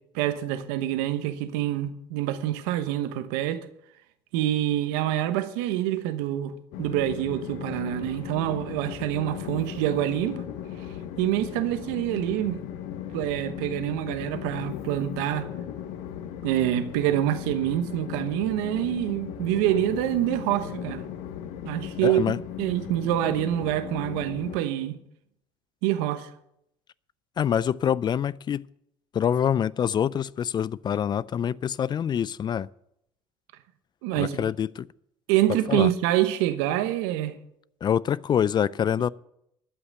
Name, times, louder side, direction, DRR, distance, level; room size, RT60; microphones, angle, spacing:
voice 1, 0.1-3.6 4.3-6.5 6.8-10.4 11.2-12.6 13.1-15.5 16.4-21.0 21.7-22.3 22.6-25.0 25.8-26.3 34.0-34.4 35.3-37.4, right 13 dB, 85° right, 1.1 m, -26 dB
Train, 6.7-24.6, left 10 dB, 80° left, 1.1 m, -37 dB
voice 2, 22.0-22.4 27.4-28.7 29.1-32.7 34.2-34.9 35.7-35.9 37.8-39.1, left 9 dB, 40° left, 0.4 m, -25 dB
12.5 x 5.9 x 9.2 m
supercardioid pair, 80°, 12 cm